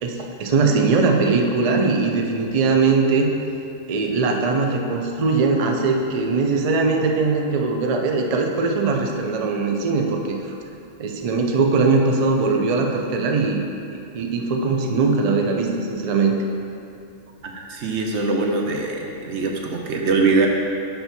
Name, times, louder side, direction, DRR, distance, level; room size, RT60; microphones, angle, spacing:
voice 1, 0.0-3.3 3.9-10.6 11.0-13.6 14.1-16.3, right 4 dB, 75° right, 2 dB, 0.3 m, -20 dB
voice 2, 17.4-20.5, right 3 dB, 60° right, 1 dB, 1.0 m, -22 dB
5.6 x 4.3 x 5.8 m, 2.8 s
omnidirectional pair, 1.4 m